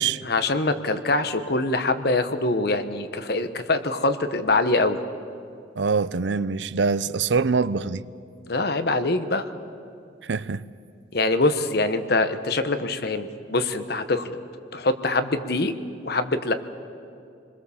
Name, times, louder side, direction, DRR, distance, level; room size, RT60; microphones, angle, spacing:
voice 1, 0.2-5.0 8.5-9.4 11.1-14.4 14.7-15.7 16.0-16.5, left 2 dB, 60° left, 1.2 m, -24 dB
voice 2, 5.8-8.0 10.2-10.6, right 5 dB, 80° right, 0.6 m, -24 dB
27.0 x 21.5 x 7.2 m
head